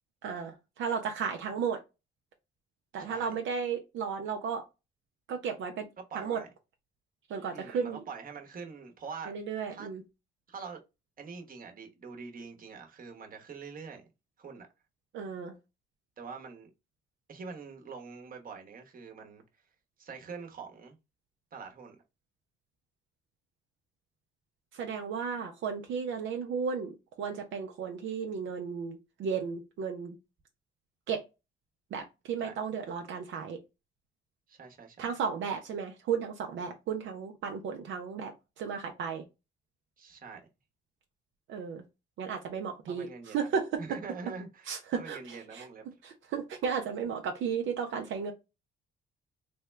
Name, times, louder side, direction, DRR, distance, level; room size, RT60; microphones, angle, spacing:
voice 1, 0.2-1.8 2.9-4.6 5.3-5.8 6.1-6.4 7.3-8.0 9.3-10.0 15.1-15.5 24.7-30.2 31.1-31.2 31.9-33.6 35.0-39.2 41.5-41.8 42.2-43.8 44.7-45.6 46.0-48.3, right 6 dB, 75° right, 0.6 m, -34 dB
voice 2, 3.0-3.4 6.1-6.5 7.5-9.3 9.7-9.9 10.5-10.8 11.2-14.1 14.4-14.7 16.2-16.7 17.3-19.4 20.0-21.0 21.5-22.0 32.4-32.6 34.5-35.1 40.0-40.4 42.9-43.5 43.8-45.9, right 5 dB, 45° right, 1.0 m, -44 dB
3.5 x 2.2 x 3.2 m
cardioid pair, 90°, 20 cm